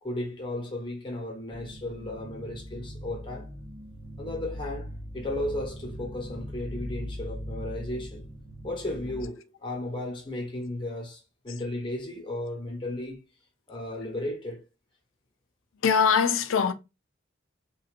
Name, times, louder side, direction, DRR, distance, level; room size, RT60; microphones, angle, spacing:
voice 1, 0.0-3.5 4.2-8.3 8.6-13.2 13.7-14.6, left 1 dB, 25° left, 1.2 m, -35 dB
sound 1, 1.5-9.3, equal, 45° right, 1.8 m, -40 dB
voice 2, 15.8-16.7, left 6 dB, 80° left, 0.5 m, -22 dB
3.8 x 2.8 x 2.5 m
head